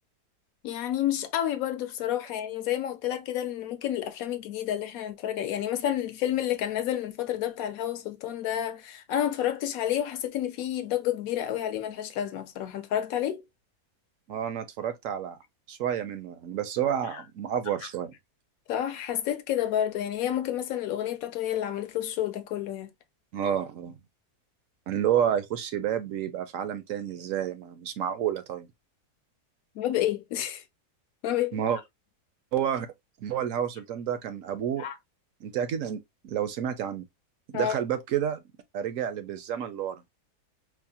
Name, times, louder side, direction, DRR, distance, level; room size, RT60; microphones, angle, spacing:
voice 1, 0.6-13.4 17.1-17.2 18.7-22.9 29.8-30.6 31.2-31.5 34.8-34.9 37.5-37.7, left 11 dB, 70° left, 0.9 m, -30 dB
voice 2, 14.3-15.4 15.7-18.1 23.3-23.9 24.9-28.7 31.5-31.8 32.5-32.9 33.2-34.9 35.4-37.1 37.5-38.4 38.7-40.0, right 9 dB, 65° right, 0.8 m, -30 dB
4.7 x 2.1 x 2.7 m
omnidirectional pair, 1.7 m